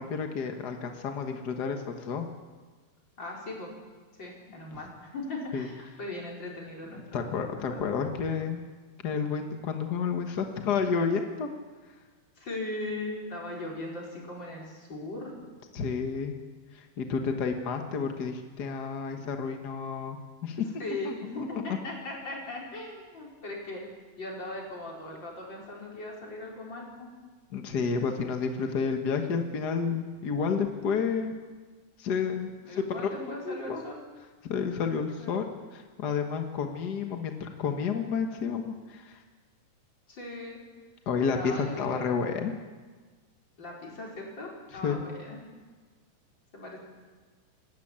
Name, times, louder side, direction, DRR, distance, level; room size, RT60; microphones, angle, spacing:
voice 1, 0.0-2.3 5.5-5.7 6.9-8.6 9.0-11.5 15.7-16.4 16.7-20.7 21.0-21.8 27.5-31.4 32.0-33.8 34.4-35.4 35.7-39.2 41.1-42.5 44.7-45.0, left 5 dB, 55° left, 5 dB, 1.1 m, -30 dB
voice 2, 3.2-3.7 4.1-7.3 7.7-7.9 12.4-15.3 20.8-23.8 24.2-27.1 32.6-34.0 35.2-35.4 40.1-40.6 41.3-42.0 43.6-45.4 46.5-46.8, left 2 dB, 35° left, -2 dB, 5.3 m, -39 dB
28.0 x 13.0 x 8.8 m, 1.4 s
omnidirectional pair, 3.8 m